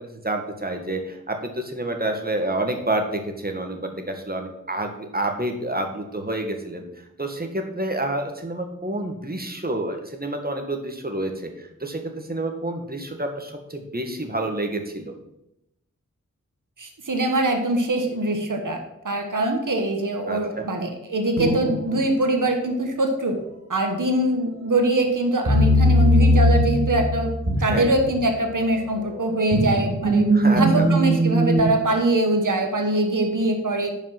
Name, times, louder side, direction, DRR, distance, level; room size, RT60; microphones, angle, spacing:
voice 1, 0.0-6.8 7.2-15.1 20.3-20.7 27.7-27.9 30.3-30.8, right 1 dB, 30° right, 4 dB, 1.7 m, -29 dB
voice 2, 16.8-18.8 19.0-23.4 23.7-27.3 27.6-30.3 30.5-33.9, right 1 dB, 85° right, 4 dB, 1.4 m, -23 dB
sound 1, 21.4-22.0 25.4-28.6 29.0-31.7, equal, 55° right, 3.0 m, -20 dB
10.5 x 5.7 x 6.0 m, 0.84 s
wide cardioid pair, 65°, 31 cm